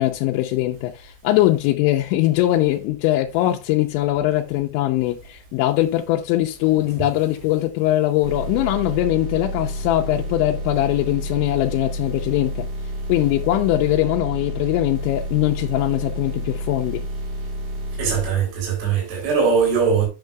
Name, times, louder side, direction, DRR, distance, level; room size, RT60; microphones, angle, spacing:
voice 1, 0.0-12.7 13.1-17.1, left 15 dB, 90° left, 3.0 m, -21 dB
sound 1, 8.2-18.3, equal, 55° right, 2.4 m, -30 dB
voice 2, 18.0-20.1, right 6 dB, 85° right, 5.7 m, -20 dB
9.7 x 6.4 x 2.3 m
omnidirectional pair, 5.2 m